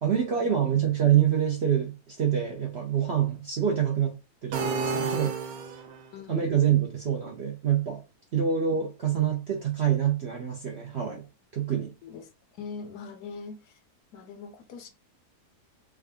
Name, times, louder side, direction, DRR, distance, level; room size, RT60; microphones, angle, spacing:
voice 1, 0.0-4.2 4.4-5.3 6.3-8.0 8.3-11.2 11.5-11.9, right 9 dB, 60° right, 0.7 m, -26 dB
sound 1, 4.5-6.1, right 4 dB, 80° right, 1.3 m, -30 dB
voice 2, 6.1-6.5 12.0-12.3 12.6-13.8 14.1-14.9, left 5 dB, 70° left, 1.0 m, -42 dB
3.6 x 2.3 x 3.5 m
omnidirectional pair, 1.8 m